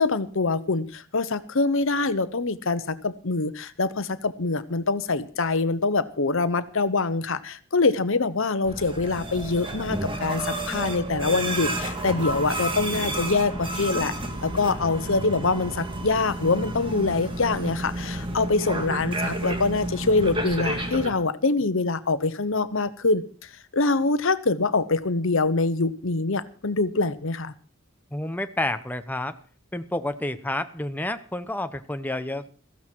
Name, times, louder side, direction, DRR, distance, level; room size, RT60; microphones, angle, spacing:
voice 1, 0.0-14.2 14.4-27.5, left 3 dB, 60° left, 1.0 m, -24 dB
sound 1, 8.6-21.1, right 1 dB, 25° right, 2.0 m, -31 dB
voice 2, 28.1-29.4 29.7-32.5, left 1 dB, 10° left, 0.8 m, -29 dB
16.0 x 15.0 x 4.6 m
head